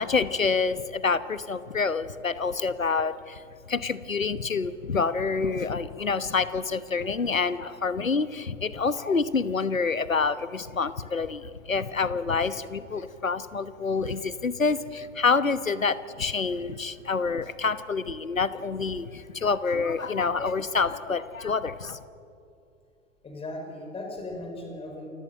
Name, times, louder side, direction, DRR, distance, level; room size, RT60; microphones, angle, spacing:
voice 1, 0.0-3.4 3.7-22.0, left 4 dB, 80° left, 15 dB, 1.1 m, -27 dB
voice 2, 23.2-25.1, left 1 dB, 15° left, 2 dB, 5.3 m, -37 dB
28.5 x 15.5 x 9.1 m, 2.5 s
figure-of-eight pair, 105°, 39 cm